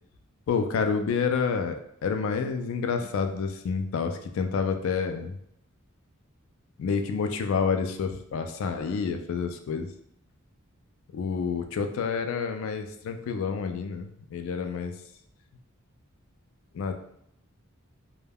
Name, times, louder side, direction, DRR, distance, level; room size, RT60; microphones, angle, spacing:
voice 1, 0.5-1.8 2.0-5.3 6.8-9.9 11.1-14.9 16.7-16.9, left 5 dB, 70° left, 7 dB, 0.3 m, -28 dB
2.2 x 2.2 x 3.3 m, 0.73 s
head